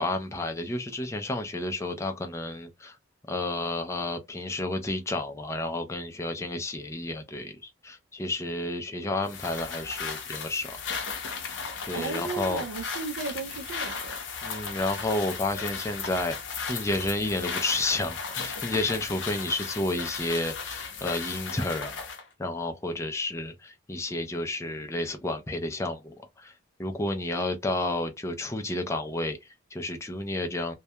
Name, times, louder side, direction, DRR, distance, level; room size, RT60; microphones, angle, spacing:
voice 1, 0.0-3.0 3.3-10.8 11.9-12.6 14.4-16.4 16.7-22.1 22.4-26.5 26.8-30.7, left 2 dB, 15° left, 0.4 m, -31 dB
sound 1, 9.3-22.2, left 5 dB, 60° left, 0.6 m, -36 dB
voice 2, 11.9-14.2, right 4 dB, 75° right, 0.3 m, -35 dB
2.2 x 2.2 x 2.7 m
head